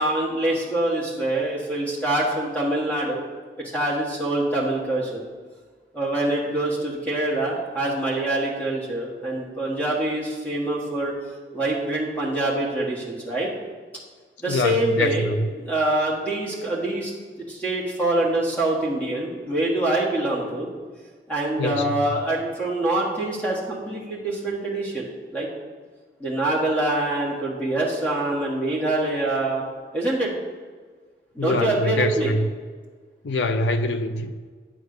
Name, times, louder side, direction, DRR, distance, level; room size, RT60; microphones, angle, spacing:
voice 1, 0.0-3.2 3.6-5.2 5.9-11.1 11.5-13.5 14.4-15.3 15.6-17.1 17.4-20.7 21.3-25.1 25.3-25.5 26.2-29.6 29.9-30.3 31.3-32.3, right 1 dB, 10° left, -4 dB, 1.5 m, -25 dB
voice 2, 14.5-15.5 21.6-21.9 31.4-32.5 33.2-34.3, left 2 dB, 85° left, 8 dB, 0.5 m, -24 dB
9.1 x 3.3 x 6.6 m, 1.5 s
head